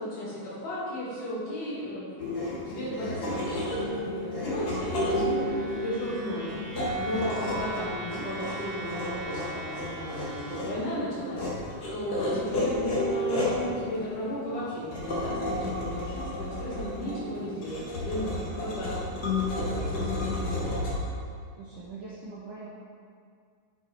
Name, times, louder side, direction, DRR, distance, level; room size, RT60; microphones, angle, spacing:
voice 1, 0.0-19.3 19.6-20.8, equal, 85° left, -8 dB, 3.9 m, -35 dB
sound 1, 2.2-20.9, left 1 dB, 40° left, 1.6 m, -32 dB
sound 2, 5.3-10.6, right 2 dB, 50° right, 1.7 m, -41 dB
voice 2, 21.6-22.7, right 3 dB, 75° right, -6 dB, 1.2 m, -43 dB
8.2 x 5.7 x 4.5 m, 2.1 s
omnidirectional pair, 3.4 m